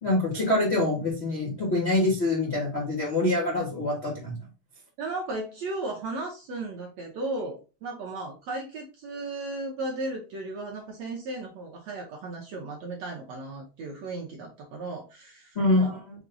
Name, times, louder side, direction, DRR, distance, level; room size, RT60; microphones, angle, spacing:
voice 1, 0.0-4.3 15.5-15.9, left 2 dB, 80° left, -4 dB, 0.5 m, -25 dB
voice 2, 5.0-16.0, right 2 dB, 70° right, 0 dB, 1.6 m, -35 dB
5.9 x 2.3 x 3.8 m, 0.32 s
omnidirectional pair, 3.9 m